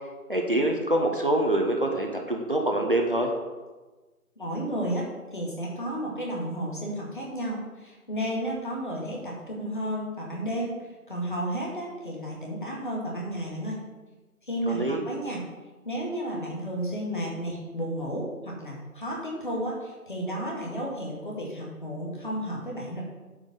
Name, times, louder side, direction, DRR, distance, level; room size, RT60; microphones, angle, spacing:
voice 1, 0.3-3.3 14.7-15.0, right 1 dB, 35° right, 1 dB, 1.1 m, -25 dB
voice 2, 4.4-5.0 5.3-13.8 14.5-15.4 15.8-23.0, right 1 dB, 35° left, -3 dB, 2.1 m, -32 dB
8.7 x 5.1 x 6.7 m, 1.2 s
figure-of-eight pair, 165°, 45 cm